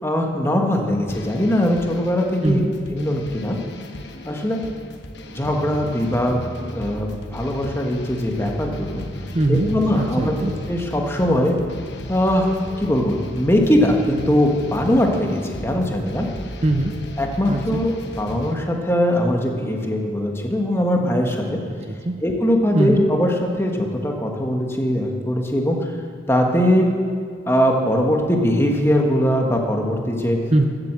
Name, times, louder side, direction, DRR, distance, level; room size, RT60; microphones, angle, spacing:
voice 1, 0.0-2.6 2.9-3.6 4.2-4.6 5.3-6.4 6.7-9.0 9.5-10.3 10.7-11.6 12.1-16.3 17.2-21.6 22.2-25.9 26.3-26.9 27.4-30.4, equal, 15° left, 1 dB, 1.4 m, -21 dB
sound 1, 1.1-18.5, left 1 dB, 75° left, 1.1 m, -35 dB
voice 2, 2.4-2.7 9.3-10.5 16.6-16.9 17.5-17.8 21.6-22.2 22.7-23.0 30.5-30.7, right 2 dB, 35° right, 5 dB, 0.7 m, -21 dB
14.5 x 7.9 x 7.5 m, 2.2 s
head